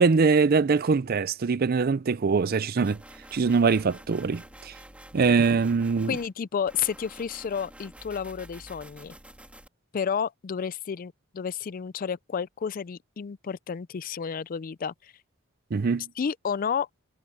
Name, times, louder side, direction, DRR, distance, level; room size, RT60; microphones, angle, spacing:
voice 1, 0.0-3.0 3.3-4.7 5.1-6.2 15.7-16.1, right 4 dB, 45° right, 0.5 m, -23 dB
sound 1, 2.8-6.3 6.7-9.7, right 1 dB, 5° right, 2.4 m, -48 dB
voice 2, 6.1-9.1 9.9-15.1 16.2-16.9, left 7 dB, 40° left, 0.4 m, -31 dB
head